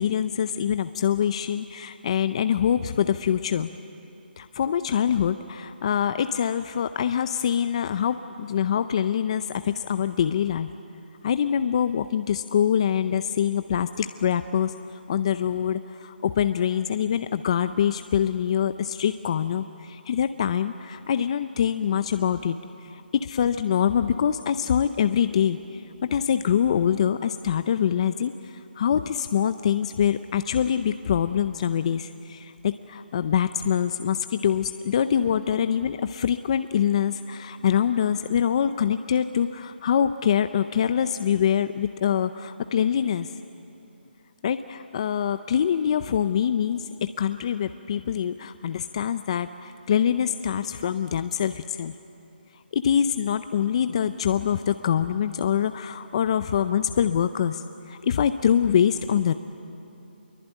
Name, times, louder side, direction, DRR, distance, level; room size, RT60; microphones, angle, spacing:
voice 1, 0.0-3.7 4.4-10.7 11.2-22.6 22.8-43.3 44.4-51.9 52.7-59.3, left 8 dB, 35° left, 11 dB, 0.5 m, -24 dB
24.5 x 23.0 x 9.1 m, 2.8 s
hypercardioid pair, 165°, 6 cm